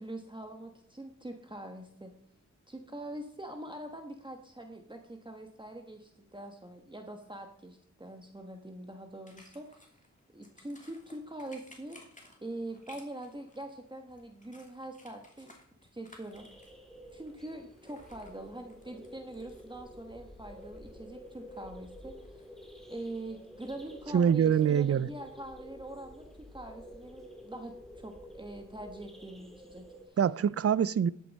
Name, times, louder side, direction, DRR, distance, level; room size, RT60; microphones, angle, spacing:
voice 1, 0.0-2.1 2.7-9.9 10.3-12.0 12.4-15.5 15.9-16.5 17.1-22.4 22.9-26.3 26.5-30.2, right 1 dB, 15° right, 1.3 m, -44 dB
sound 1, 9.3-25.4, left 1 dB, 25° left, 2.9 m, -61 dB
sound 2, 16.3-30.1, equal, ahead, 2.3 m, -50 dB
voice 2, 24.1-25.1 30.2-31.1, right 8 dB, 50° right, 0.5 m, -25 dB
11.5 x 8.7 x 4.2 m
wide cardioid pair, 65°, 30 cm